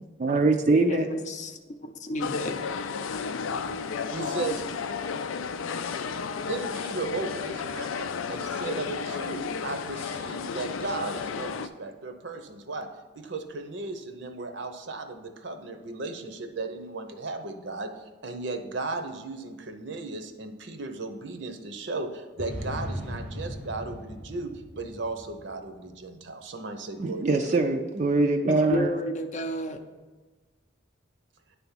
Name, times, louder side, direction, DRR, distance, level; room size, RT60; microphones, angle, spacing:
voice 1, 0.2-1.1 27.0-28.9, right 3 dB, 35° right, 0.4 m, -23 dB
voice 2, 0.8-2.5 28.7-29.8, equal, 35° left, 0.5 m, -31 dB
sound 1, 2.2-11.7, left 5 dB, 85° left, 0.4 m, -33 dB
voice 3, 4.1-4.6 6.4-12.9 13.1-27.5, right 3 dB, 65° right, 0.7 m, -36 dB
sound 2, 22.4-25.9, equal, 5° left, 0.8 m, -38 dB
10.0 x 3.5 x 5.7 m
head